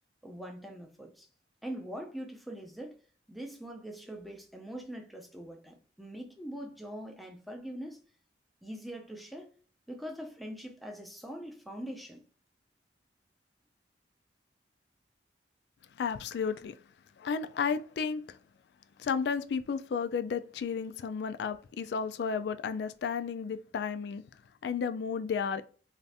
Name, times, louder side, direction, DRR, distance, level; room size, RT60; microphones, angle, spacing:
voice 1, 0.2-1.3 1.6-3.0 3.3-8.0 8.6-9.5 9.9-12.2, equal, ahead, 0.5 m, -43 dB
voice 2, 16.0-16.8 17.2-18.4 19.0-24.2 24.6-25.6, left 6 dB, 65° left, 0.3 m, -33 dB
2.6 x 2.4 x 3.3 m
head